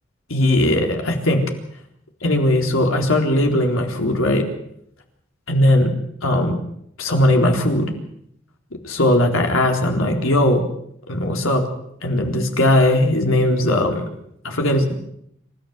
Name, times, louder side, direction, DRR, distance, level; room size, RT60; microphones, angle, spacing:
voice 1, 0.3-1.4 2.2-4.4 5.5-5.9 6.2-6.6 7.0-7.9 8.8-10.6 11.1-11.6 12.0-14.1 14.4-14.9, left 1 dB, 85° left, 2 dB, 4.0 m, -18 dB
27.0 x 14.0 x 8.1 m, 0.74 s
head